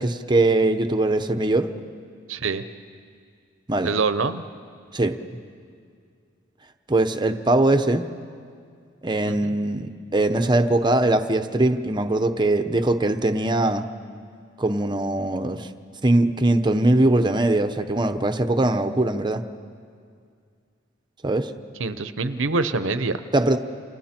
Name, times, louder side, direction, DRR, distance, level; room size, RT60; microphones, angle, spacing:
voice 1, 0.0-1.7 3.7-3.9 4.9-5.2 6.9-8.0 9.0-13.8 14.6-15.7 16.0-19.4 21.2-21.5 23.3-23.6, right 2 dB, 25° right, 8 dB, 0.9 m, -21 dB
voice 2, 2.3-2.6 3.8-4.4 9.3-9.6 21.8-23.2, right 4 dB, 90° right, 12 dB, 0.9 m, -25 dB
28.5 x 27.0 x 4.4 m, 2.2 s
head